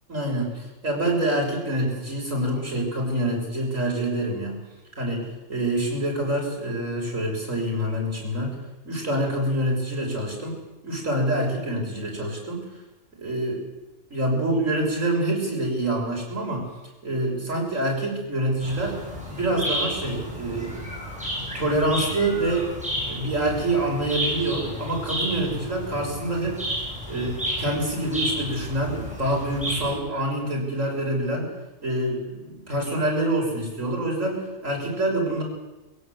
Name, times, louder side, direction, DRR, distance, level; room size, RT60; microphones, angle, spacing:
voice 1, 0.1-4.6 5.0-8.6 8.8-10.6 10.8-12.6 13.2-13.7 14.1-16.7 17.0-19.0 19.3-20.9 21.5-22.7 23.1-26.6 27.1-31.5 31.8-35.4, right 1 dB, 90° right, -1 dB, 6.4 m, -26 dB
sound 1, 18.6-29.9, equal, 5° right, 8.0 m, -32 dB
22.0 x 16.5 x 8.0 m, 1.1 s
omnidirectional pair, 1.3 m